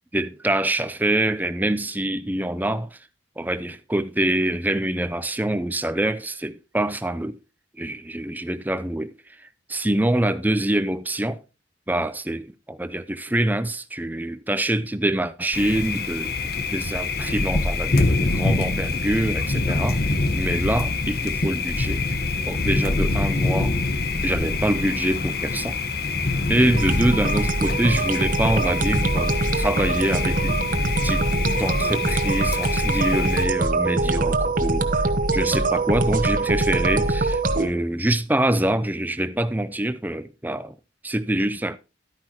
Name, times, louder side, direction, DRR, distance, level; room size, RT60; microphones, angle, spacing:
voice 1, 0.1-3.0 3.4-7.4 7.7-11.4 11.9-20.0 20.3-22.1 22.5-23.8 24.2-25.8 26.5-30.6 31.0-31.3 31.6-35.0 35.3-40.8 41.0-41.8, right 1 dB, 10° right, 0.6 m, -25 dB
Thunder, 15.5-33.5, left 3 dB, 55° left, 1.2 m, -25 dB
sound 1, 26.7-37.7, right 2 dB, 45° right, 1.1 m, -23 dB
12.5 x 9.7 x 2.9 m
head